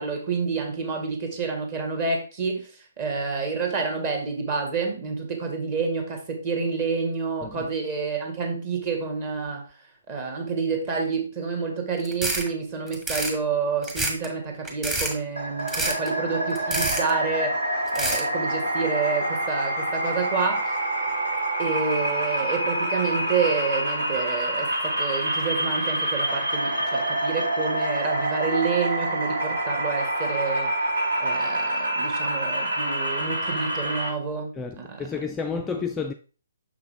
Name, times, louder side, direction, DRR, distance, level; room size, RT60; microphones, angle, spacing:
voice 1, 0.0-2.7 3.0-9.6 10.1-20.7 21.6-30.7 31.2-35.1, right 5 dB, 30° right, 1.9 m, -28 dB
sound 1, 12.0-12.5 12.9-13.3 13.8-14.3 14.6-15.1 15.7-16.1 16.6-17.1 17.9-18.3, right 2 dB, 10° right, 1.5 m, -27 dB
sound 2, 15.4-34.1, right 1 dB, 75° right, 3.4 m, -27 dB
voice 2, 34.6-36.1, left 5 dB, 10° left, 0.4 m, -31 dB
6.4 x 5.8 x 3.5 m
figure-of-eight pair, 135°, 0 cm